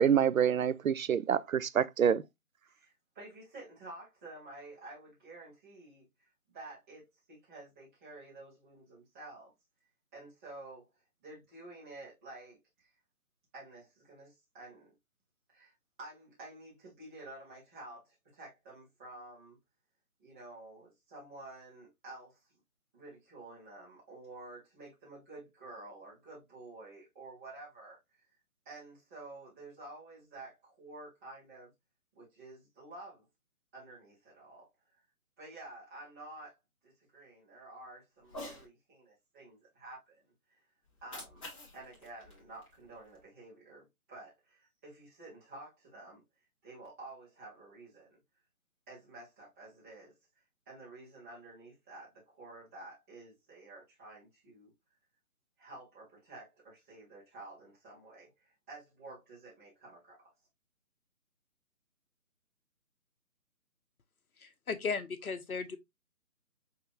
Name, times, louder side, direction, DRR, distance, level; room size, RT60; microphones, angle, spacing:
voice 1, 0.0-2.2, right 8 dB, 65° right, 0.6 m, -27 dB
voice 2, 2.6-9.5 10.1-10.9 11.2-12.9 13.5-14.9 15.5-19.6 20.2-22.5 22.9-28.3 28.6-31.7 32.1-33.2 33.7-34.7 35.4-36.6 36.8-40.2 40.5-40.6 41.0-41.4 41.7-46.2 46.6-48.2 48.9-50.1 50.7-54.7 55.6-60.2, right 2 dB, 10° right, 1.0 m, -51 dB
Cat, 38.2-38.7 40.9-43.2, left 1 dB, 20° left, 1.5 m, -48 dB
voice 3, 64.4-65.8, left 5 dB, 70° left, 0.9 m, -36 dB
5.8 x 2.8 x 2.4 m
figure-of-eight pair, 150°, 44 cm